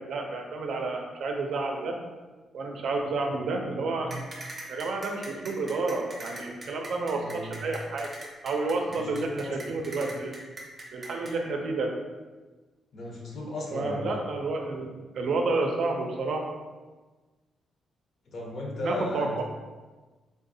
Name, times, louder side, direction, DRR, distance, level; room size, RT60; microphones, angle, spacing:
voice 1, 0.0-1.9 2.5-4.3 4.7-8.1 8.4-10.4 10.9-12.0 13.7-16.5 18.8-19.4, right 3 dB, 65° right, 2 dB, 0.5 m, -30 dB
sound 1, 4.1-11.3, right 1 dB, 25° right, 0.6 m, -41 dB
voice 2, 7.1-7.6 8.9-9.8 12.9-14.2 18.3-19.4, left 1 dB, 55° left, -1 dB, 0.7 m, -36 dB
3.6 x 2.6 x 2.7 m, 1.3 s
cardioid pair, 130°, 0 cm